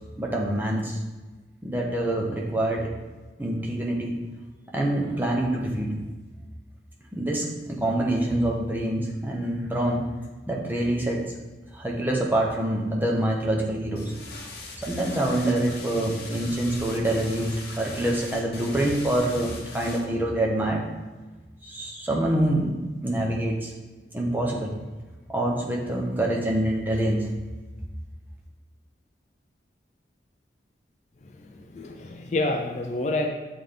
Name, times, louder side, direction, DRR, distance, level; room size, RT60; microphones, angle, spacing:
voice 1, 0.2-1.0 1.6-2.9 3.4-4.2 4.7-5.9 7.1-10.1 10.5-11.3 11.7-14.1 14.8-20.9 21.6-22.8 23.0-23.7 24.1-24.8 25.3-27.3, right 1 dB, 10° right, -2 dB, 0.7 m, -26 dB
sound 1, 14.0-20.0, left 3 dB, 60° left, 0.9 m, -41 dB
voice 2, 31.4-33.3, left 2 dB, 40° left, 4 dB, 0.4 m, -28 dB
7.5 x 3.4 x 3.7 m, 1.2 s
head